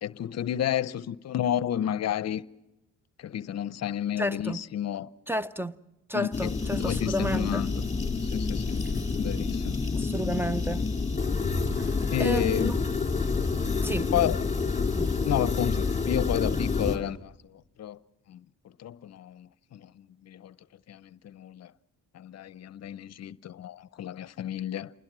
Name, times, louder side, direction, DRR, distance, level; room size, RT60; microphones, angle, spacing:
voice 1, 0.0-2.4 3.2-5.1 6.1-7.7 8.2-8.8 9.2-9.8 12.1-12.8 14.1-14.4 15.3-18.0 18.3-18.4 18.8-20.5 20.9-21.7 22.1-24.9, left 10 dB, 55° left, 0.7 m, -31 dB
voice 2, 4.2-4.6 5.3-5.7 6.1-7.6 9.9-10.8 11.8-12.7 13.8-14.1 14.9-15.1, right 1 dB, 5° right, 0.7 m, -31 dB
sound 1, 6.3-17.0, left 4 dB, 25° left, 3.4 m, -28 dB
28.0 x 21.0 x 6.1 m
cardioid pair, 90°, 30 cm